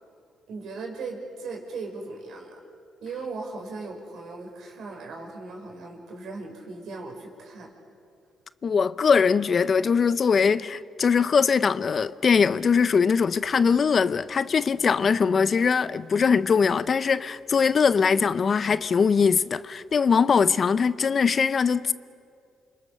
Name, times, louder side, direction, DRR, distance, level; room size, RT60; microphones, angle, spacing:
voice 1, 0.5-2.5 3.0-7.7, right 3 dB, 75° right, 5.6 m, -38 dB
voice 2, 8.6-21.9, left 6 dB, 45° left, 0.7 m, -21 dB
28.5 x 25.5 x 6.7 m
cardioid pair, 90°, 0 cm